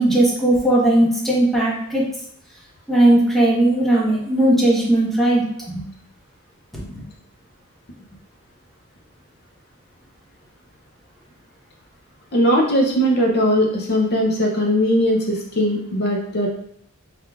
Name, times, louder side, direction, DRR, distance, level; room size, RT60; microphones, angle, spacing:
voice 1, 0.0-2.0 2.9-5.8 6.7-7.0, right 1 dB, ahead, -5 dB, 1.0 m, -17 dB
voice 2, 12.3-16.5, equal, 45° left, 0 dB, 0.5 m, -19 dB
4.6 x 3.7 x 2.3 m, 0.70 s
head